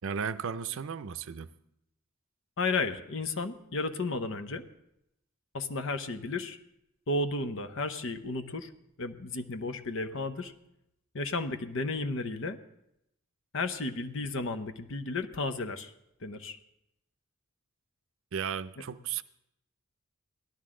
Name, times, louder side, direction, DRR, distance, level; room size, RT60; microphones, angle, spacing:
voice 1, 0.0-1.5 18.3-19.2, right 7 dB, 65° right, 12 dB, 0.5 m, -34 dB
voice 2, 2.6-4.6 5.5-6.6 7.1-8.7 9.0-10.5 11.1-12.6 13.5-15.9 16.2-16.6, left 3 dB, 60° left, 9 dB, 0.8 m, -33 dB
17.5 x 12.5 x 3.7 m, 0.82 s
head